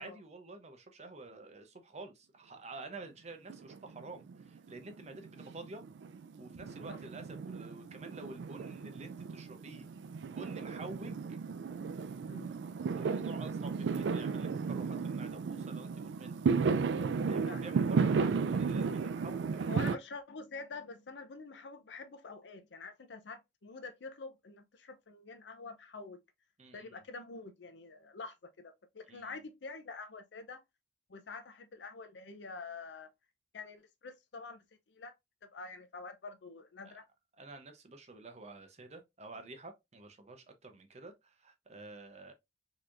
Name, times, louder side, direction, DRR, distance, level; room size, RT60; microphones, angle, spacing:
voice 1, 0.0-5.8 6.4-9.9 10.3-11.4 13.0-16.4 17.3-20.0 26.6-27.0 29.1-29.4 36.8-37.0 37.4-42.3, right 3 dB, 40° right, 0.8 m, -49 dB
Fireworks, 3.5-4.4 4.7-20.0, right 5 dB, 85° right, 0.4 m, -34 dB
voice 2, 17.5-18.1 19.7-26.2 26.7-30.6 31.1-33.1 33.5-35.1 35.4-37.1, left 4 dB, 80° left, 0.6 m, -47 dB
4.0 x 3.0 x 2.5 m
head